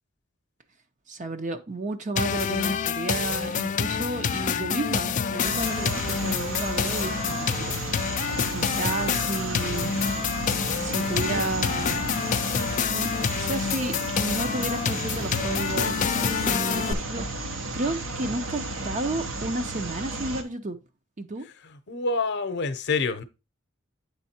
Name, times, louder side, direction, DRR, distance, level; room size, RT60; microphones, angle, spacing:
voice 1, 1.1-7.8 8.1-8.2 8.5-9.9 10.7-12.1 12.9-20.8 21.2-21.5, right 2 dB, 40° right, 0.7 m, -32 dB
sound 1, 2.2-16.9, left 7 dB, 40° left, 0.4 m, -27 dB
sound 2, 5.4-20.4, right 2 dB, 70° right, 1.0 m, -33 dB
voice 2, 21.9-23.2, left 4 dB, 60° left, 0.7 m, -27 dB
8.3 x 3.6 x 4.2 m
head